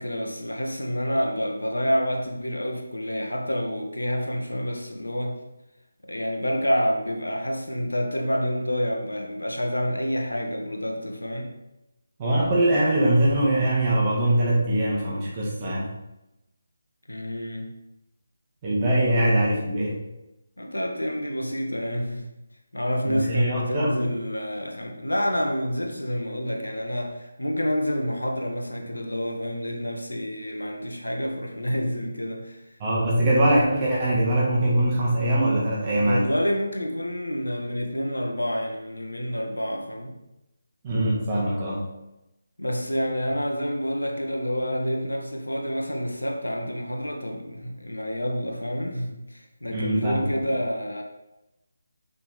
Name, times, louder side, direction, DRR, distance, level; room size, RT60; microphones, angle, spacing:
voice 1, 0.0-5.3 6.0-11.5 17.1-17.7 20.6-22.2 22.7-32.6 36.0-40.1 42.6-51.0, equal, 80° left, 2 dB, 1.4 m, -28 dB
voice 2, 12.2-15.9 18.6-20.0 23.0-24.0 32.8-36.2 40.8-41.8 49.7-50.3, right 1 dB, 25° right, -5 dB, 1.9 m, -22 dB
7.0 x 5.7 x 3.8 m, 0.94 s
figure-of-eight pair, 155°, 0 cm